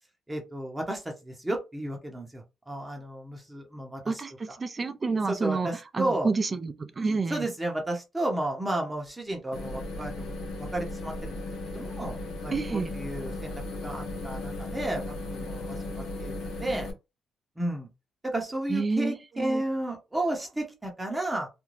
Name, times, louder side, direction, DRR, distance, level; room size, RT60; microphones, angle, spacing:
voice 1, 0.3-4.2 5.3-6.3 7.3-11.4 11.7-12.2 12.4-16.3 16.6-16.9 17.6-17.9 18.2-21.5, right 1 dB, 15° right, 0.8 m, -33 dB
voice 2, 4.1-5.7 5.9-7.5 12.5-12.9 18.7-19.6, right 4 dB, 30° right, 0.4 m, -29 dB
sound 1, 9.5-16.9, left 2 dB, 75° left, 0.8 m, -36 dB
2.5 x 2.2 x 3.1 m
cardioid pair, 90°, 0 cm